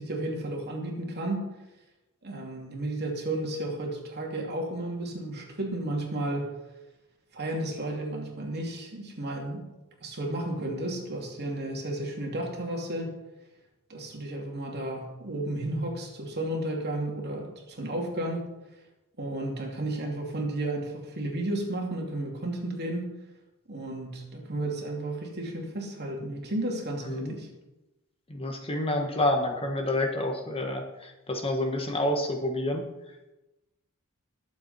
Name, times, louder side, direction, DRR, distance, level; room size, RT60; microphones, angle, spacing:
voice 1, 0.0-1.5 2.2-6.5 7.3-9.7 10.0-13.1 13.9-18.5 19.2-23.1 23.7-27.5, right 1 dB, 50° right, 0 dB, 2.7 m, -33 dB
voice 2, 27.0-27.4 28.3-32.8, left 1 dB, 25° left, 3 dB, 1.5 m, -28 dB
21.0 x 7.4 x 4.3 m, 1.0 s
head